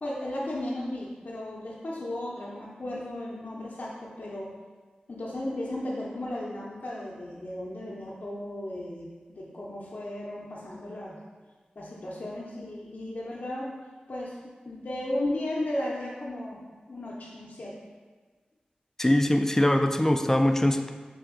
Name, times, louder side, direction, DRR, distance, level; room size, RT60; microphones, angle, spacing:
voice 1, 0.0-4.5 5.1-11.2 11.8-13.7 14.1-14.3 14.7-16.6 16.9-17.7, left 1 dB, 60° left, -6 dB, 0.6 m, -35 dB
voice 2, 19.0-20.9, left 1 dB, 15° left, 6 dB, 0.3 m, -22 dB
3.4 x 2.9 x 3.6 m, 1.4 s
cardioid pair, 40°, 3 cm